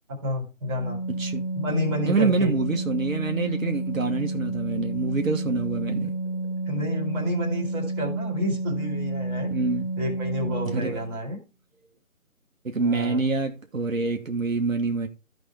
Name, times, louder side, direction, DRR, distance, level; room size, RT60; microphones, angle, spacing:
voice 1, 0.1-1.0 1.5-2.5 6.7-9.5 10.0-11.4 12.8-13.2, left 1 dB, 15° right, 2.6 m, -30 dB
Organ, 0.6-11.2, right 2 dB, 30° left, 0.6 m, -30 dB
voice 2, 2.0-6.1 9.5-9.9 10.7-11.0 12.6-15.1, right 3 dB, 65° right, 1.4 m, -26 dB
14.5 x 5.3 x 3.4 m
figure-of-eight pair, 160°, 43 cm